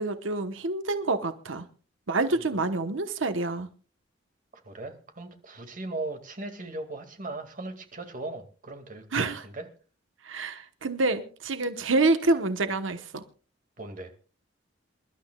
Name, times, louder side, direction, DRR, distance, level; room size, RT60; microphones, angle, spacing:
voice 1, 0.0-1.7 2.1-3.7 9.1-9.4 10.2-13.2, right 3 dB, 90° right, 1.1 m, -27 dB
voice 2, 4.6-9.7 13.8-14.1, right 2 dB, 45° right, 2.2 m, -38 dB
27.5 x 12.0 x 2.3 m
head